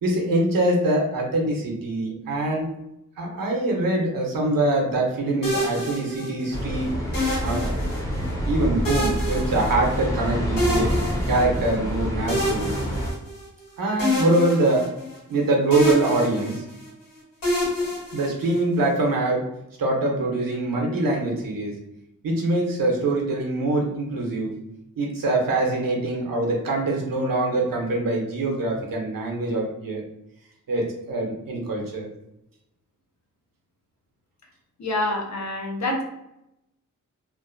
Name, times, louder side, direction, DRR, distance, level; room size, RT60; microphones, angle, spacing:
voice 1, 0.0-2.7 3.2-6.9 7.4-7.8 8.5-12.7 13.8-14.9 15.3-16.7 18.1-19.5 19.8-21.7 22.2-24.5 25.0-30.0 30.7-32.1, right 2 dB, 85° right, 0 dB, 0.7 m, -24 dB
sound 1, 5.4-6.6 7.1-8.3 8.8-10.2 10.6-11.8 12.3-13.6 14.0-15.4 15.7-16.9 17.4-18.8, left 1 dB, 85° left, 1.3 m, -28 dB
sound 2, 6.5-13.1, equal, 10° left, 0.6 m, -27 dB
voice 2, 34.8-36.0, left 1 dB, 55° left, 1 dB, 0.7 m, -26 dB
2.5 x 2.1 x 2.5 m, 0.86 s
wide cardioid pair, 105°, 33 cm